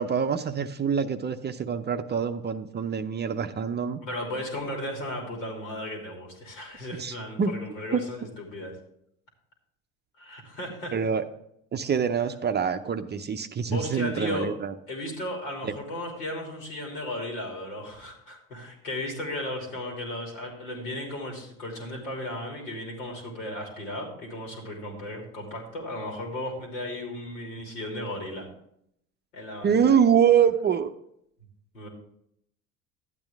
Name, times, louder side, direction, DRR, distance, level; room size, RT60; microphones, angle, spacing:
voice 1, 0.0-4.0 7.0-7.5 7.9-8.0 10.9-11.2 11.7-14.7 15.6-15.7 29.6-30.9, right 7 dB, 25° right, 8 dB, 0.6 m, -25 dB
voice 2, 4.0-8.7 10.2-10.9 13.7-14.5 14.9-28.5 29.3-30.0 31.7-31.9, left 1 dB, 80° left, 0 dB, 3.0 m, -35 dB
12.0 x 8.8 x 3.5 m, 0.73 s
hypercardioid pair, 65°, 38 cm